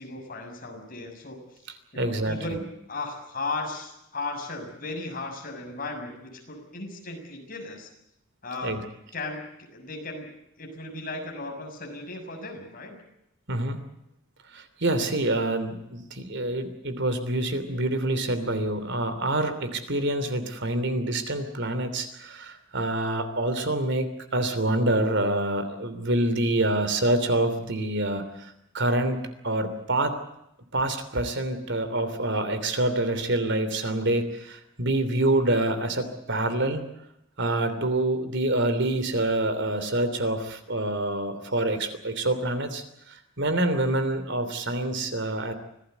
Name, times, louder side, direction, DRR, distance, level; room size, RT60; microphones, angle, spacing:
voice 1, 0.0-1.4 1.9-7.9 8.4-8.8 9.1-9.4 9.7-10.3 10.6-12.9, left 2 dB, 45° left, 2 dB, 6.7 m, -36 dB
voice 2, 2.0-2.6 8.6-8.8 13.5-13.8 14.5-30.1 30.7-36.8 37.4-45.5, right 1 dB, 60° right, 10 dB, 3.1 m, -26 dB
25.5 x 17.5 x 8.1 m, 0.83 s
head